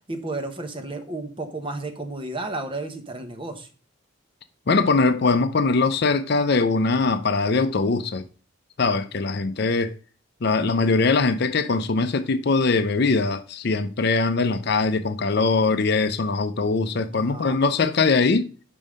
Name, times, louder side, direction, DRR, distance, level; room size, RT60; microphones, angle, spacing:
voice 1, 0.1-3.7 17.1-17.6, right 2 dB, 25° right, 1.0 m, -32 dB
voice 2, 4.7-8.2 8.8-9.9 10.4-18.5, left 3 dB, 50° left, 0.6 m, -21 dB
5.4 x 5.4 x 6.3 m
head